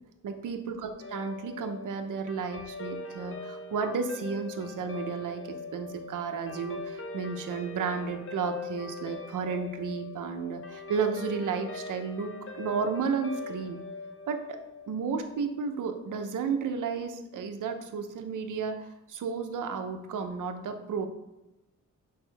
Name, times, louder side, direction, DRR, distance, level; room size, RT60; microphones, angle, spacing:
voice 1, 0.2-13.8 14.3-14.6 14.9-21.1, right 5 dB, 70° right, 6 dB, 0.8 m, -33 dB
Guitar, 1.0-15.6, left 4 dB, 40° left, 0.9 m, -42 dB
6.4 x 5.1 x 3.4 m, 0.98 s
cardioid pair, 115°, 32 cm